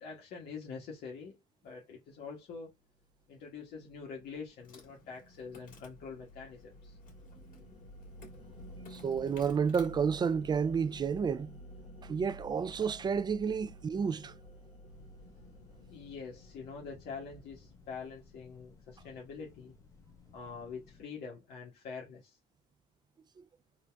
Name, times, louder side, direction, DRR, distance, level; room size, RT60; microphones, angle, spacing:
voice 1, 0.0-1.4 1.6-2.8 3.3-7.0 15.9-19.7 20.3-22.4, left 5 dB, 75° left, 1.3 m, -45 dB
sound 1, 3.7-18.2, equal, 35° left, 1.7 m, -52 dB
Insect, 4.6-11.3, left 4 dB, 55° left, 2.3 m, -59 dB
voice 2, 8.9-11.6 12.0-14.3 23.4-23.5, right 6 dB, 25° right, 0.3 m, -31 dB
sound 2, 14.9-21.0, left 5 dB, 20° left, 0.9 m, -59 dB
3.9 x 2.4 x 3.4 m
cardioid pair, 110°, 17 cm